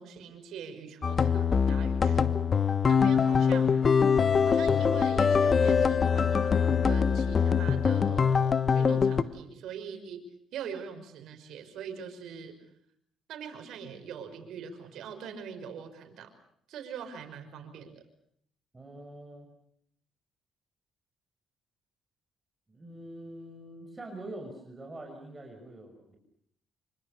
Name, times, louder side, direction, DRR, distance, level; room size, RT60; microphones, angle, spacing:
voice 1, 0.0-2.3 2.9-3.7 4.4-10.2 10.5-12.6 13.3-16.3 16.7-18.0, right 7 dB, 80° right, 6 dB, 5.5 m, -42 dB
sound 1, 1.0-9.2, left 6 dB, 40° left, 1.2 m, -24 dB
voice 2, 18.7-19.5 22.7-26.2, right 1 dB, 20° right, 2 dB, 6.1 m, -44 dB
27.0 x 25.0 x 6.6 m, 0.67 s
cardioid pair, 90°, 0 cm